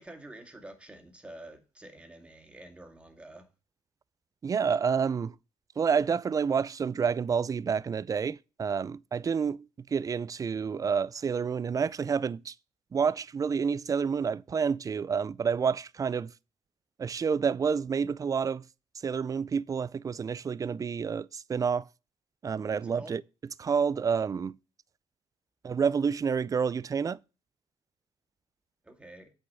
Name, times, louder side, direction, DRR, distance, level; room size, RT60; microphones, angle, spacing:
voice 1, 0.0-3.5 22.7-23.1 28.8-29.3, right 1 dB, 10° right, 2.1 m, -48 dB
voice 2, 4.4-5.3 5.8-12.5 12.9-16.3 17.0-18.6 19.0-21.9 22.4-23.2 23.6-24.6 25.6-27.2, right 6 dB, 30° right, 0.4 m, -29 dB
8.4 x 5.1 x 6.2 m
cardioid pair, 105°, 11 cm